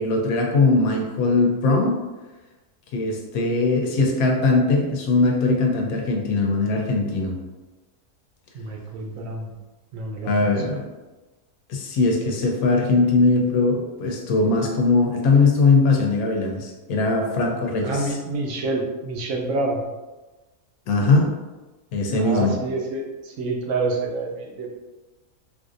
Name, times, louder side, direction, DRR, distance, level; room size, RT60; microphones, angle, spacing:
voice 1, 0.0-2.0 2.9-7.3 10.2-10.9 11.7-18.1 20.9-21.3 21.9-22.5, left 3 dB, 90° left, 1 dB, 1.1 m, -20 dB
voice 2, 8.5-9.5 9.9-10.6 17.8-19.8 22.1-24.8, right 2 dB, 75° right, 1 dB, 1.0 m, -28 dB
4.0 x 2.6 x 2.5 m, 1.2 s
omnidirectional pair, 1.5 m